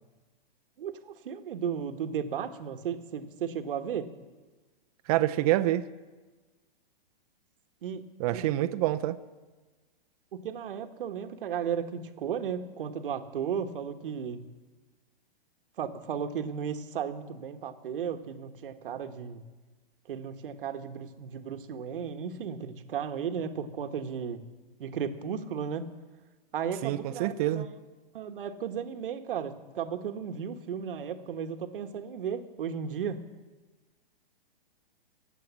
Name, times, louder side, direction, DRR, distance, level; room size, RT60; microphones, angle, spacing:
voice 1, 0.8-4.1 7.8-8.0 8.3-8.4 10.3-14.4 15.8-19.4 20.1-24.4 24.8-25.8 26.5-27.7 28.1-33.2, right 7 dB, 65° right, 8 dB, 1.3 m, -35 dB
voice 2, 5.1-5.8 8.2-9.2 26.8-27.7, right 14 dB, 40° right, 11 dB, 0.7 m, -26 dB
14.5 x 9.0 x 7.3 m, 1.3 s
hypercardioid pair, 125°, 29 cm